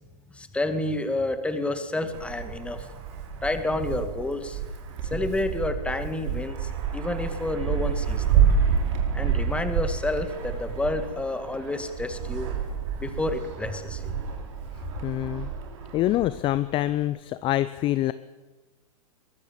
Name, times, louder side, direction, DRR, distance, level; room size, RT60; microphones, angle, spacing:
voice 1, 0.3-2.9 3.4-4.6 5.1-8.5 9.1-12.5 13.0-14.2, left 2 dB, 5° left, 9 dB, 2.1 m, -29 dB
Wind, 2.1-17.0, right 7 dB, 50° right, 4.6 m, -29 dB
voice 2, 15.0-15.5 15.9-18.1, left 14 dB, 25° left, 14 dB, 0.7 m, -25 dB
23.0 x 20.5 x 7.5 m, 1.2 s
hypercardioid pair, 115°, 20 cm